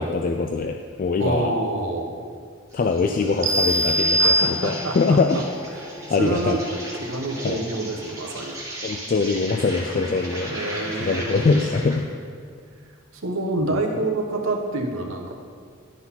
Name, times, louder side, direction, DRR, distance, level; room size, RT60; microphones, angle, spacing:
voice 1, 0.0-1.5 2.7-5.4 6.1-6.6 7.4-7.6 8.8-10.5 11.0-12.1, left 4 dB, 40° left, 4 dB, 0.3 m, -23 dB
voice 2, 1.2-2.1 4.2-5.4 5.7-5.8 6.2-8.6 10.5-11.5 13.2-15.3, right 2 dB, 85° right, 2 dB, 1.0 m, -27 dB
Insect, 2.7-12.1, right 1 dB, 15° right, 1.6 m, -37 dB
sound 1, 3.4-5.1, right 1 dB, 35° right, 0.7 m, -21 dB
11.5 x 4.0 x 5.7 m, 2.1 s
head